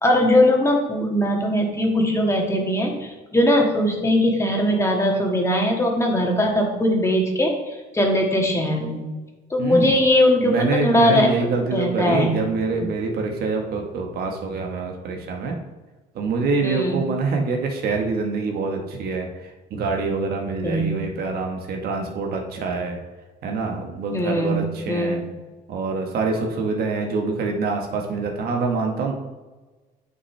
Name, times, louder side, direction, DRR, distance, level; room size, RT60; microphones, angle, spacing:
voice 1, 0.0-9.0 9.5-12.3 16.6-17.1 20.6-20.9 24.1-25.3, left 1 dB, 15° left, 0 dB, 1.6 m, -20 dB
voice 2, 9.6-10.0 10.4-15.6 16.1-23.0 23.4-25.2 25.7-29.1, right 4 dB, 65° right, 2 dB, 1.3 m, -25 dB
9.4 x 5.6 x 3.3 m, 1.2 s
cardioid pair, 110°, 17 cm